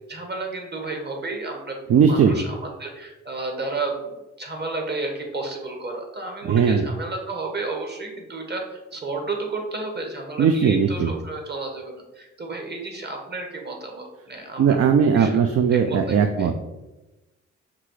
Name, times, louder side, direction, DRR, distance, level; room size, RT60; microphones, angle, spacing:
voice 1, 0.1-1.7 2.1-14.8 15.1-15.3 15.9-16.2, right 3 dB, 35° right, 2 dB, 1.2 m, -32 dB
voice 2, 1.9-2.3 6.4-6.9 10.4-11.1 14.6-16.6, right 6 dB, 50° right, 6 dB, 0.4 m, -18 dB
5.8 x 2.4 x 3.1 m, 1.0 s
supercardioid pair, 60°, 30 cm